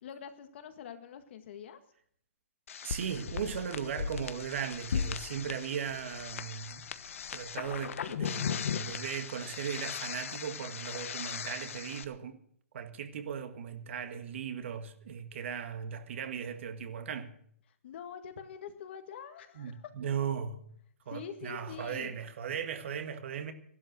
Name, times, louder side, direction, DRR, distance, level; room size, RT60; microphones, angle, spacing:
voice 1, 0.0-1.8 17.8-19.8 21.1-22.2, left 8 dB, 50° left, 1.8 m, -45 dB
sound 1, 2.7-12.0, left 7 dB, 70° left, 1.1 m, -38 dB
voice 2, 2.8-6.8 7.3-12.4 12.7-17.3 19.6-20.6 21.1-23.5, right 7 dB, 60° right, 1.8 m, -37 dB
14.5 x 12.0 x 6.2 m
hypercardioid pair, 155°, 8 cm